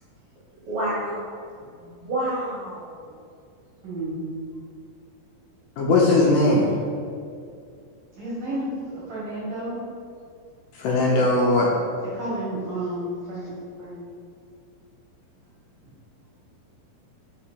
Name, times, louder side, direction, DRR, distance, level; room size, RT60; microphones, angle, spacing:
voice 1, 0.7-1.4 1.8-3.1, right 1 dB, 65° right, -7 dB, 2.0 m, -29 dB
voice 2, 3.8-4.4 8.2-9.8 11.1-11.2 12.1-13.5 13.8-14.1, right 1 dB, 50° right, -10 dB, 1.8 m, -31 dB
voice 3, 5.8-6.7 10.8-11.7, left 2 dB, 75° left, -3 dB, 2.1 m, -19 dB
5.1 x 4.2 x 4.5 m, 2.3 s
omnidirectional pair, 4.2 m